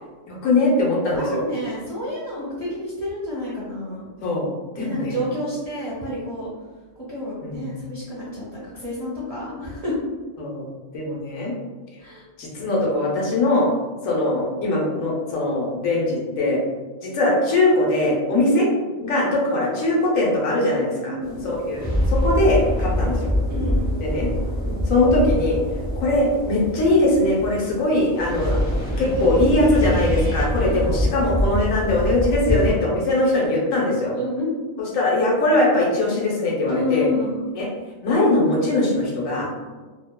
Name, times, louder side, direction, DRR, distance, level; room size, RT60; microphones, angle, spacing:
voice 1, 0.3-1.4 4.2-4.5 4.8-5.2 7.4-7.7 10.4-10.7 10.9-11.5 12.4-13.7 14.0-16.6 17.0-18.7 19.0-21.1 21.7-23.2 24.0-24.3 24.9-25.6 26.0-28.6 29.0-34.1 34.8-37.1 37.5-37.7 38.0-39.5, left 2 dB, 90° left, -3 dB, 1.1 m, -21 dB
voice 2, 1.1-4.1 4.8-6.5 7.1-9.9 12.0-12.2 19.1-19.3 21.0-21.5 22.8-23.1 23.5-23.9 24.6-24.9 30.6-30.9 32.4-32.6 34.1-34.5 36.7-37.4 39.7-39.8, left 1 dB, 45° right, -8 dB, 0.5 m, -29 dB
sound 1, 21.2-32.7, equal, 20° left, 0.5 m, -25 dB
2.7 x 2.1 x 2.2 m, 1.3 s
omnidirectional pair, 1.4 m